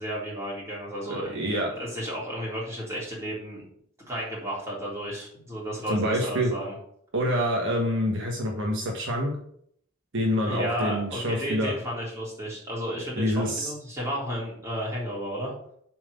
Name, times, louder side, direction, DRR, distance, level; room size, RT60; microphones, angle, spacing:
voice 1, 0.0-1.4 1.7-3.6 4.1-6.8 10.5-15.5, equal, 15° right, -6 dB, 3.7 m, -33 dB
voice 2, 1.1-1.7 5.9-6.5 7.1-9.4 10.1-11.7 13.2-13.7, equal, 60° right, -1 dB, 1.5 m, -26 dB
7.6 x 4.7 x 6.6 m, 0.67 s
head